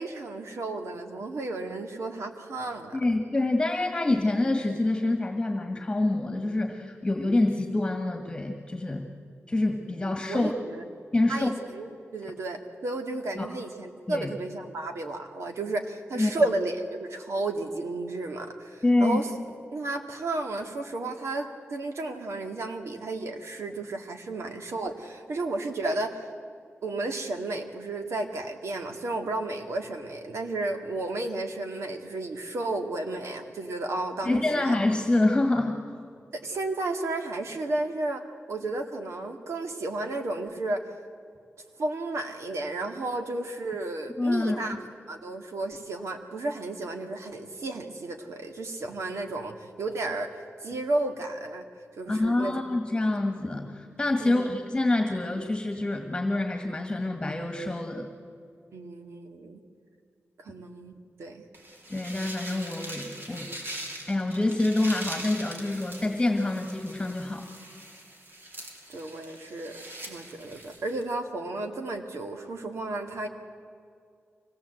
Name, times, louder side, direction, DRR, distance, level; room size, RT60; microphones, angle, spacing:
voice 1, 0.0-3.0 10.3-10.8 11.3-19.3 19.7-26.3 26.8-34.8 36.3-40.8 41.8-44.8 45.1-50.3 50.6-51.6 52.0-52.6 54.2-54.5 58.7-59.6 60.4-60.9 61.2-61.4 68.9-69.8 70.1-73.3, right 2 dB, 75° right, 4 dB, 2.1 m, -33 dB
voice 2, 2.9-9.1 9.5-10.5 11.1-11.5 13.4-13.5 14.1-14.3 16.2-16.3 18.8-19.2 34.2-35.8 44.2-44.6 52.1-58.1 61.9-67.5, left 2 dB, 20° left, 4 dB, 1.8 m, -26 dB
sound 1, 61.5-71.0, right 1 dB, 50° right, 3.0 m, -42 dB
24.5 x 18.0 x 8.0 m, 2.3 s
wide cardioid pair, 115°, 5 cm